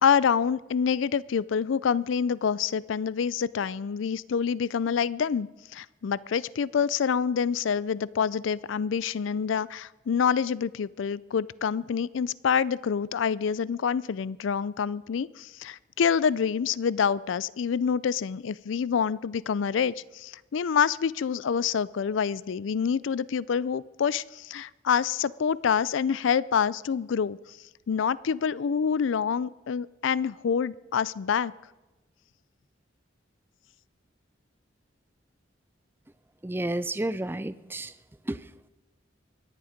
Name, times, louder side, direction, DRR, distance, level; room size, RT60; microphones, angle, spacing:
voice 1, 0.0-27.4 27.9-31.5, left 7 dB, 85° left, 21 dB, 0.4 m, -27 dB
voice 2, 36.4-37.9 38.3-38.4, right 1 dB, 10° right, 15 dB, 0.4 m, -31 dB
24.0 x 10.5 x 5.1 m, 1.1 s
head